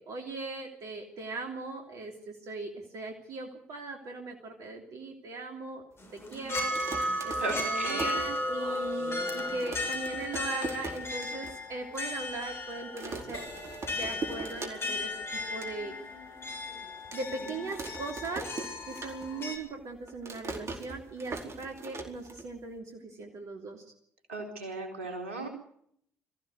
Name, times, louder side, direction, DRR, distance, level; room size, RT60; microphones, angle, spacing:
voice 1, 0.0-5.8 6.1-13.4 13.9-15.9 16.6-16.8 17.1-23.8, right 3 dB, 65° right, 2 dB, 3.1 m, -39 dB
sound 1, 6.0-19.6, left 1 dB, 40° left, 7.1 m, -35 dB
sound 2, 6.6-8.9 9.2-9.3 9.5-11.5 11.9-12.0 12.2-12.6 13.0-15.1 15.4-15.7 16.2-16.3 17.1-19.6 19.8-22.8, right 3 dB, 45° right, 4.5 m, -41 dB
voice 2, 7.4-8.1 24.3-25.5, right 3 dB, 85° right, 3 dB, 4.3 m, -36 dB
Crash cymbal, 13.3-21.0 21.6-21.9, left 1 dB, 70° left, 6.8 m, -52 dB
22.0 x 15.5 x 8.2 m, 0.69 s
hypercardioid pair, 45°, 6 cm